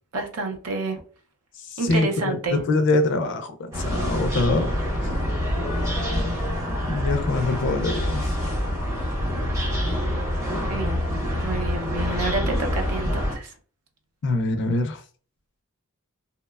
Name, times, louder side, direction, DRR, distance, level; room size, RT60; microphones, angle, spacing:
voice 1, 0.1-1.0 1.8-2.6 10.7-11.0 11.4-13.5, right 3 dB, 75° right, 0.6 m, -29 dB
voice 2, 1.6-4.7 5.0-5.1 6.9-8.4 14.2-15.0, left 2 dB, 55° left, 0.4 m, -24 dB
sound 1, 3.7-13.4, equal, 15° right, 0.8 m, -26 dB
2.8 x 2.1 x 2.2 m
head